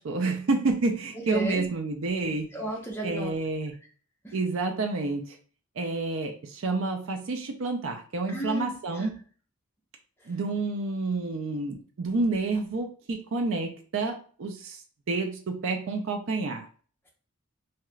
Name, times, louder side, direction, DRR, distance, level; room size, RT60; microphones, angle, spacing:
voice 1, 0.0-2.5 3.0-3.7 4.3-5.4 5.8-9.2 10.3-14.8 15.1-16.7, right 3 dB, 65° right, 4 dB, 0.4 m, -29 dB
voice 2, 1.3-1.7 2.5-3.3 4.2-4.3 8.3-9.1, right 1 dB, 10° left, -2 dB, 0.7 m, -34 dB
2.8 x 2.3 x 3.1 m, 0.41 s
head